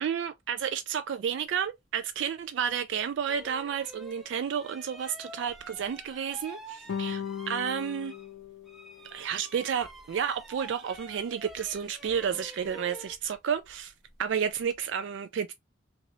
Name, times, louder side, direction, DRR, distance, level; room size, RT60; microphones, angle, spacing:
voice 1, 0.0-8.1 9.0-13.9 14.2-15.5, right 7 dB, 70° right, 0.3 m, -31 dB
Aslide updown slow, 2.6-2.7 3.2-8.4 8.6-14.8, right 1 dB, ahead, 0.5 m, -48 dB
sound 1, 6.9-9.4, left 7 dB, 90° left, 0.5 m, -38 dB
2.9 x 2.9 x 2.6 m
head